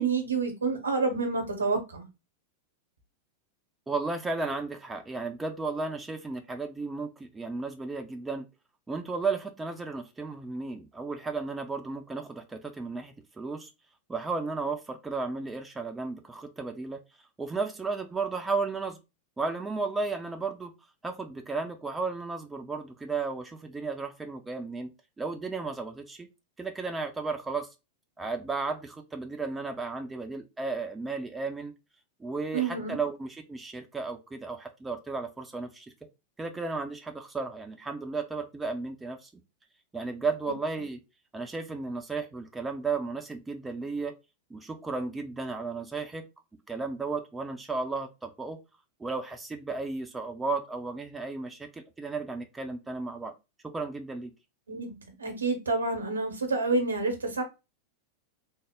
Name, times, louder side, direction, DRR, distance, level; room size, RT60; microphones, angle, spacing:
voice 1, 0.0-2.1 32.5-33.0 54.7-57.4, right 4 dB, 75° right, 0.9 m, -28 dB
voice 2, 3.9-8.5 8.9-13.7 14.1-17.0 17.4-19.0 19.4-20.7 21.0-24.9 25.2-26.3 26.6-27.7 28.2-31.7 32.2-35.9 36.4-39.3 39.9-41.0 41.3-44.1 44.5-46.2 46.7-48.6 49.0-53.3 53.6-54.3, right 4 dB, 10° right, 0.5 m, -34 dB
3.2 x 2.0 x 3.6 m
figure-of-eight pair, 90°, 0 cm